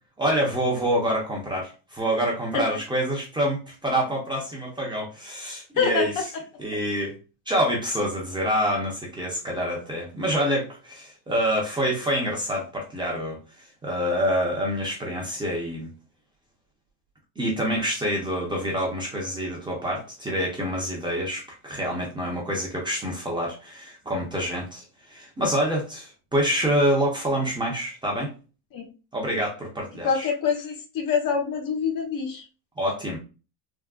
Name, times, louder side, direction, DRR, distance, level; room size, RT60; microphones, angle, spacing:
voice 1, 0.2-6.1 6.6-7.2 7.5-15.9 17.4-28.3 29.1-30.3 32.8-33.2, equal, 10° right, -2 dB, 0.6 m, -27 dB
voice 2, 5.8-6.2 28.7-28.9 30.0-32.5, left 6 dB, 50° left, 4 dB, 0.8 m, -25 dB
3.5 x 2.2 x 2.3 m, 0.32 s
cardioid pair, 165°, 42 cm